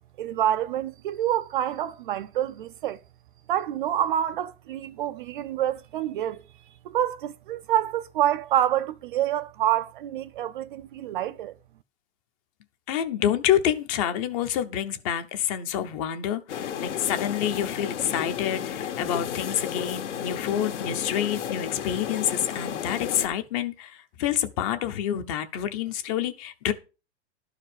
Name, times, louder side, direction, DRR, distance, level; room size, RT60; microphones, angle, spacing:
voice 1, 0.2-3.0 3.5-6.4 6.8-11.6, right 11 dB, 45° right, 0.5 m, -27 dB
voice 2, 12.9-26.7, left 10 dB, 30° left, 0.8 m, -28 dB
sound 1, 16.5-23.3, left 9 dB, 75° left, 2.0 m, -33 dB
12.0 x 4.9 x 6.6 m
supercardioid pair, 170°, 35 cm